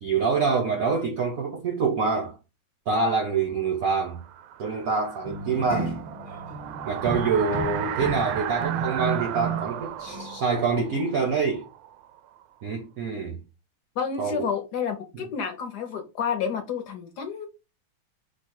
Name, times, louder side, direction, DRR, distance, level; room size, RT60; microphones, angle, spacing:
voice 1, 0.0-2.4 2.9-4.2 4.6-6.0 6.8-11.7 12.6-13.4 14.2-14.5 15.1-15.2, right 4 dB, 70° right, 0.8 m, -26 dB
sound 1, 3.6-12.4, right 11 dB, 90° right, 1.4 m, -35 dB
sound 2, 5.2-9.8 10.1-10.4, right 4 dB, 45° left, 0.7 m, -34 dB
voice 2, 14.0-17.5, left 7 dB, 65° left, 1.1 m, -30 dB
4.9 x 2.1 x 4.4 m
omnidirectional pair, 2.3 m